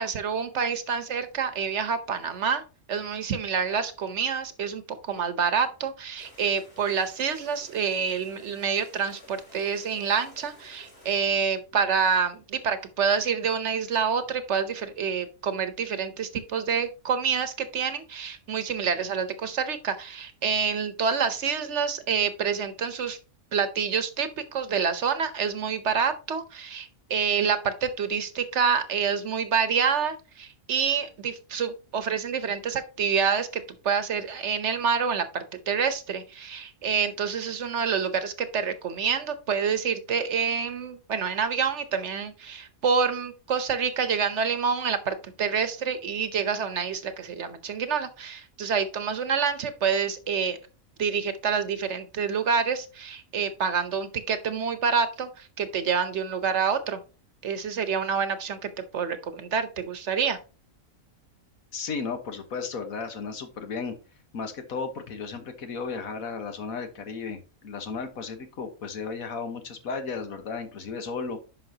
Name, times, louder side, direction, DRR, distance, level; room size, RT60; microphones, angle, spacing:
voice 1, 0.0-2.6 2.9-23.2 23.5-50.6 51.0-57.0 57.4-60.4, right 6 dB, 60° right, 11 dB, 1.1 m, -27 dB
sound 1, 6.2-11.2, left 2 dB, 45° left, 4.6 m, -52 dB
voice 2, 61.7-64.0 64.3-71.4, left 5 dB, 85° left, 7 dB, 1.6 m, -34 dB
10.0 x 5.7 x 2.8 m, 0.33 s
omnidirectional pair, 1.4 m